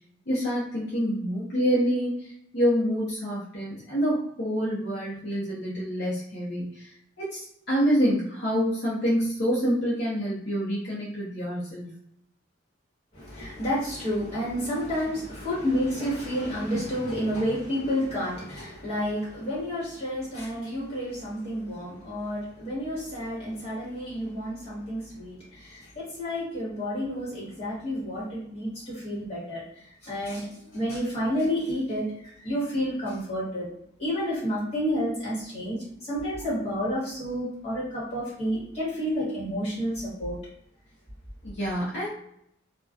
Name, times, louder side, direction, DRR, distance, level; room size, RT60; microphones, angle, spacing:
voice 1, 0.3-6.9 7.2-11.9 41.4-42.1, equal, 55° left, -7 dB, 0.6 m, -27 dB
voice 2, 13.1-29.6 30.0-33.7 34.0-40.4, equal, 30° left, -8 dB, 1.2 m, -30 dB
2.3 x 2.2 x 2.5 m, 0.73 s
head